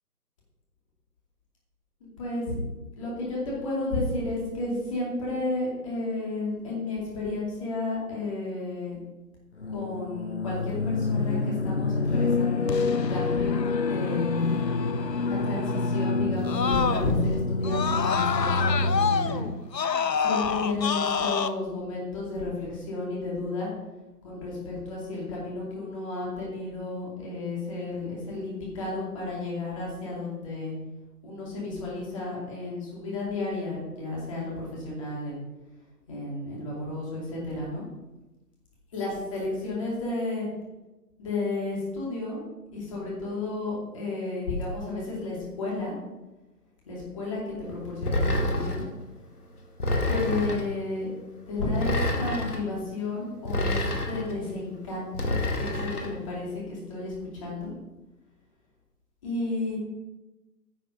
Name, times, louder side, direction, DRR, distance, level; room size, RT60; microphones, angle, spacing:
voice 1, 2.2-2.6 3.0-9.0 9.7-14.4 15.2-19.5 20.2-23.7 24.2-30.7 31.2-35.4 36.1-37.8 38.9-40.5 41.2-42.4 42.7-45.9 46.9-48.8 50.1-51.1 51.5-57.7 59.2-59.8, left 2 dB, 20° left, -5 dB, 2.5 m, -32 dB
sound 1, 9.6-19.5, left 3 dB, 45° left, 0.5 m, -27 dB
Screaming, 12.7-17.3 17.6-21.5, left 6 dB, 85° left, 0.8 m, -29 dB
sound 2, 48.0-48.9 49.8-50.7 51.7-52.6 53.5-54.3 55.1-56.1, left 1 dB, 65° left, 2.4 m, -27 dB
10.0 x 7.4 x 5.3 m, 1.1 s
figure-of-eight pair, 160°, 48 cm